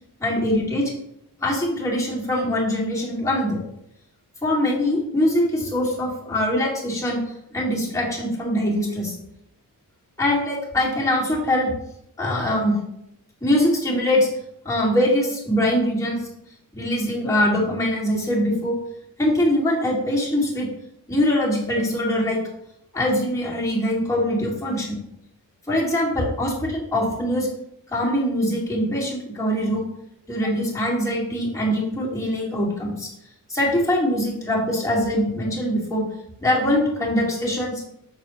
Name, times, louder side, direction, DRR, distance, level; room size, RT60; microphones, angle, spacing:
voice 1, 0.2-0.9 1.4-3.6 4.4-7.2 7.5-9.2 10.2-11.7 12.2-12.7 13.4-14.3 14.6-16.2 16.7-18.8 19.2-20.7 21.1-22.4 22.9-25.0 25.7-27.5 27.9-29.8 30.3-33.1 33.5-36.0 36.4-37.8, left 1 dB, 10° left, -6 dB, 2.3 m, -22 dB
7.1 x 6.8 x 3.1 m, 0.78 s
wide cardioid pair, 160°, 35 cm